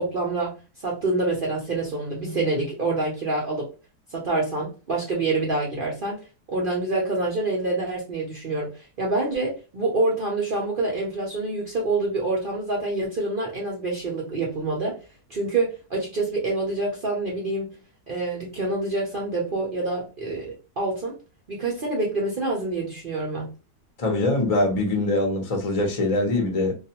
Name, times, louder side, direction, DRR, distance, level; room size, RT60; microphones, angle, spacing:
voice 1, 0.0-3.7 4.1-6.2 6.5-8.7 9.0-15.0 15.3-17.8 18.1-21.2 21.5-23.5, right 2 dB, 55° right, 0.6 m, -26 dB
voice 2, 24.0-26.7, left 2 dB, 40° left, 0.5 m, -23 dB
2.4 x 2.3 x 2.8 m
omnidirectional pair, 1.7 m